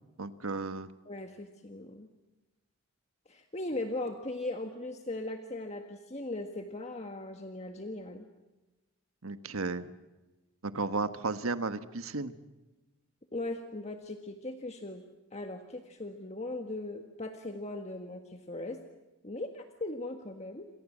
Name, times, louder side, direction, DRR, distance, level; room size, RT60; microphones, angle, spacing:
voice 1, 0.2-0.9 9.2-9.9 10.6-12.3, right 3 dB, 80° right, 10 dB, 1.5 m, -34 dB
voice 2, 1.1-2.1 3.3-8.3 13.3-15.0 15.3-18.8 19.2-20.7, left 2 dB, 30° left, 5 dB, 1.7 m, -39 dB
29.0 x 25.5 x 7.5 m, 1.1 s
head